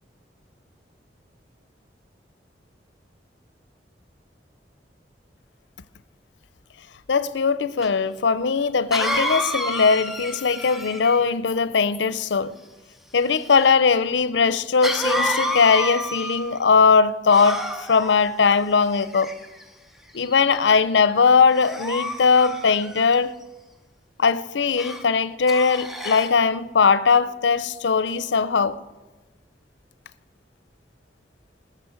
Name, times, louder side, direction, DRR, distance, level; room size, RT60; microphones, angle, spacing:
voice 1, 7.1-12.5 13.1-19.3 20.1-23.3 24.2-28.8, left 5 dB, 85° left, 0.6 m, -20 dB
Cough, 7.8-7.9 8.9-11.3 14.8-16.6 17.3-18.2 19.0-19.6 20.2-20.5 21.5-23.1 24.8-25.0 25.5-26.4, equal, ahead, 0.8 m, -29 dB
19.5 x 6.8 x 6.5 m
head